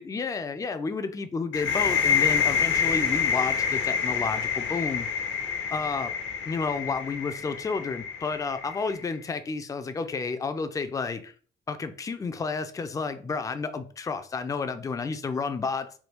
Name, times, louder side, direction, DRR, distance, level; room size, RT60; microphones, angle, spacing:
voice 1, 0.0-5.1 5.7-6.1 6.5-11.3 11.7-15.9, left 4 dB, 15° left, 0.3 m, -31 dB
sound 1, 1.5-9.1, left 7 dB, 70° left, 0.7 m, -27 dB
3.4 x 2.2 x 3.0 m
cardioid pair, 90°, 20 cm